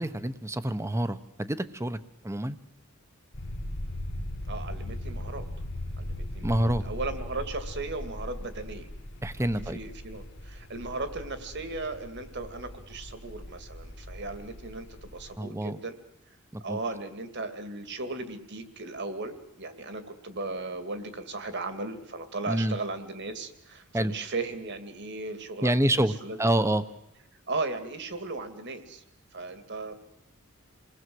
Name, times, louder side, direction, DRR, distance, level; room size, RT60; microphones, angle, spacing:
voice 1, 0.0-2.0 2.2-2.6 6.4-6.9 9.2-9.8 15.4-15.8 16.5-16.8 22.5-22.8 23.9-24.1 25.6-26.1 26.4-26.8, right 1 dB, 15° right, 13 dB, 1.0 m, -27 dB
sound 1, 3.3-15.3, left 1 dB, 55° left, 1.9 m, -39 dB
voice 2, 4.5-5.5 6.0-8.9 9.4-16.0 16.6-26.4 27.5-29.0 29.3-29.9, right 3 dB, 55° right, 9 dB, 2.4 m, -36 dB
28.5 x 20.0 x 7.9 m, 0.87 s
head